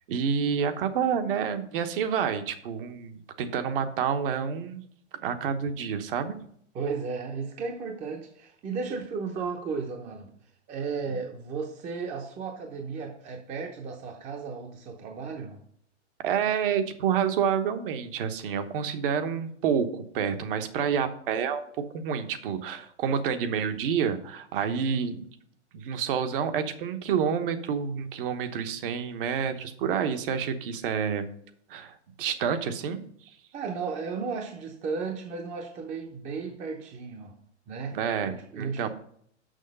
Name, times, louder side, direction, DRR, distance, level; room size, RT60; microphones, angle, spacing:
voice 1, 0.1-4.8 5.2-6.4 16.2-21.6 21.9-25.3 25.7-31.3 31.7-33.0 37.9-38.9, right 7 dB, 50° right, 8 dB, 1.1 m, -28 dB
voice 2, 6.7-10.3 10.7-15.6 24.6-25.0 33.5-37.3 37.7-38.0 38.2-38.9, right 5 dB, 20° right, 3 dB, 0.8 m, -34 dB
6.5 x 5.9 x 5.4 m, 0.66 s
hypercardioid pair, 130°, 36 cm